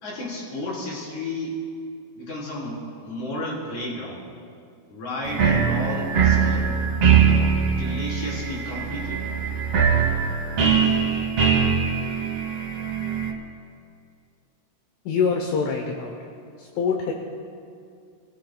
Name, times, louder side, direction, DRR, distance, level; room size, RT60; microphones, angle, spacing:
voice 1, 0.0-1.6 2.2-4.2 4.9-6.8 7.8-9.4, left 1 dB, 40° left, -5 dB, 5.0 m, -32 dB
sound 1, 5.2-13.3, right 6 dB, 60° right, 1.5 m, -22 dB
voice 2, 15.1-16.3 16.6-17.1, left 5 dB, 75° left, 1 dB, 3.4 m, -25 dB
25.5 x 17.0 x 2.4 m, 2.3 s
omnidirectional pair, 5.8 m